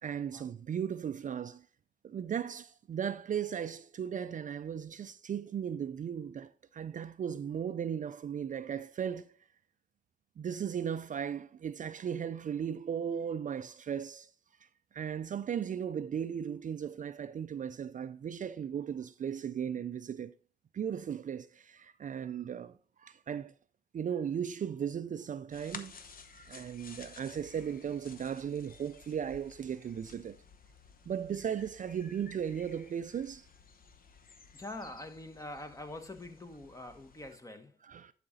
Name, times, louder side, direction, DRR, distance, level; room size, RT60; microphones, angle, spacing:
voice 1, 0.0-1.6 2.0-9.4 10.4-14.3 14.6-14.7 14.9-20.3 20.7-23.5 23.9-25.9 26.3-30.4 31.1-33.5 37.9-38.1, right 8 dB, 45° right, 0.4 m, -36 dB
sound 1, 25.5-37.4, left 5 dB, 50° left, 1.0 m, -54 dB
voice 2, 34.5-37.8, left 2 dB, 15° left, 1.2 m, -45 dB
11.0 x 5.0 x 4.0 m
cardioid pair, 95°, 18 cm